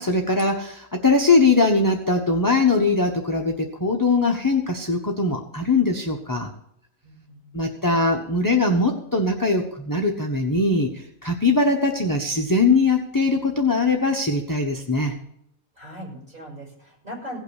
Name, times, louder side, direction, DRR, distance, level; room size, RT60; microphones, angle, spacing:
voice 1, 0.0-6.5 7.5-15.1, left 3 dB, 15° left, 1 dB, 0.9 m, -21 dB
voice 2, 7.0-7.7 15.7-17.4, equal, 35° right, -3 dB, 6.6 m, -39 dB
16.5 x 5.9 x 8.1 m, 0.74 s
omnidirectional pair, 1.4 m